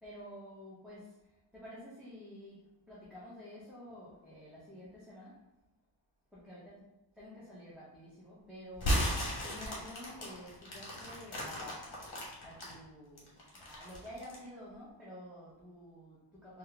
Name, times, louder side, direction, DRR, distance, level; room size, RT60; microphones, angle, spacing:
voice 1, 0.0-5.4 6.3-6.8 7.2-16.6, left 1 dB, ahead, -10 dB, 1.0 m, -50 dB
sound 1, 8.7-12.7 13.2-14.5, equal, 55° left, 1.3 m, -35 dB
4.2 x 2.4 x 3.4 m, 0.96 s
wide cardioid pair, 140°, 45 cm